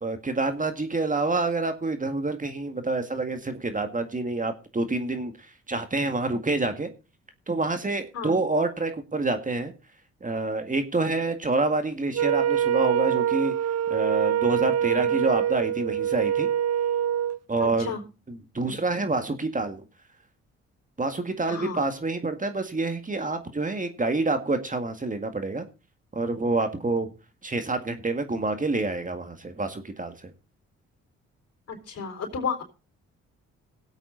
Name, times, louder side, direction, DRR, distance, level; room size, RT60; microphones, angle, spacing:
voice 1, 0.0-5.3 5.7-6.9 7.5-9.7 10.2-13.5 13.9-16.5 17.5-17.9 18.3-19.8 21.0-25.7 26.1-27.1 27.4-30.3, right 3 dB, 25° right, 7 dB, 1.9 m, -27 dB
Wind instrument woodwind instrument, 12.1-17.4, right 9 dB, 55° right, 0.7 m, -24 dB
voice 2, 14.8-15.2 17.6-18.0 18.6-18.7 21.5-21.8 31.7-32.6, left 5 dB, 55° left, 0 dB, 4.4 m, -33 dB
19.0 x 8.1 x 3.9 m, 0.32 s
supercardioid pair, 60°, 31 cm